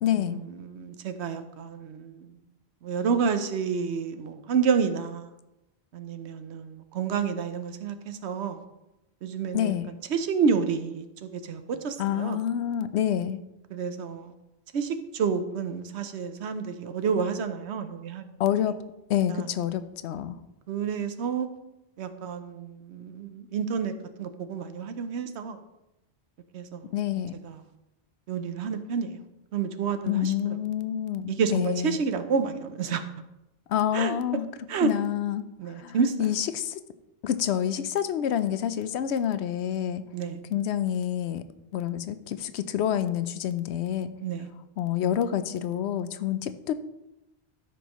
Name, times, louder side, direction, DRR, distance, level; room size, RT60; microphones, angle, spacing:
voice 1, 0.0-0.4 9.5-9.9 12.0-13.4 18.4-18.8 19.1-20.4 26.9-27.3 30.1-32.0 33.7-34.5 34.8-36.8 37.2-40.0 40.5-41.4 41.7-44.1 44.8-46.7, left 10 dB, 85° left, 12 dB, 0.8 m, -28 dB
voice 2, 0.6-2.2 2.8-5.3 5.9-8.6 9.2-9.7 10.1-12.4 13.7-14.3 14.7-18.2 19.3-19.4 20.7-21.5 22.0-23.9 24.2-25.6 26.5-26.9 27.4-27.5 28.3-29.2 29.5-30.5 31.3-33.0 33.9-34.1 34.7-34.9 35.6-36.1 40.1-40.4 44.2-44.5, right 6 dB, 90° right, 9 dB, 1.0 m, -29 dB
13.0 x 5.4 x 3.0 m, 0.94 s
omnidirectional pair, 1.1 m